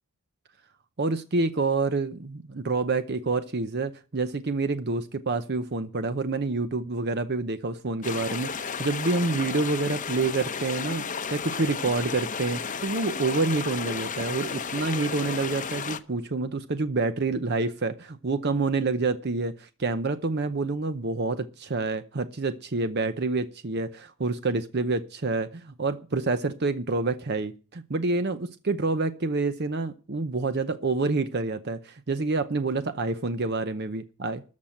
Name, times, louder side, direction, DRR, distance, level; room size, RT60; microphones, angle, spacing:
voice 1, 1.0-11.0 11.3-34.4, right 3 dB, 45° right, 10 dB, 0.7 m, -28 dB
sound 1, 8.0-16.0, left 6 dB, 35° left, 0.8 m, -33 dB
13.5 x 5.8 x 8.9 m, 0.36 s
head